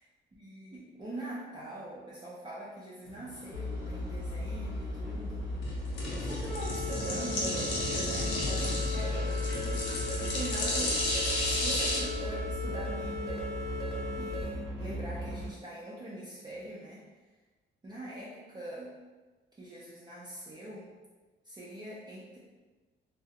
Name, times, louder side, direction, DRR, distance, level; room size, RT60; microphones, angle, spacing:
voice 1, 0.4-5.6 6.2-9.9 10.2-17.0 17.8-18.9 19.6-20.9 21.4-22.4, right 1 dB, 20° right, -7 dB, 0.4 m, -43 dB
sound 1, 3.1-12.0, left 1 dB, 75° left, 0.7 m, -34 dB
sound 2, 3.5-15.5, left 1 dB, 80° right, 0.8 m, -36 dB
sound 3, 6.5-14.4, left 1 dB, ahead, 0.9 m, -38 dB
2.3 x 2.0 x 2.7 m, 1.3 s
cardioid pair, 90°, 20 cm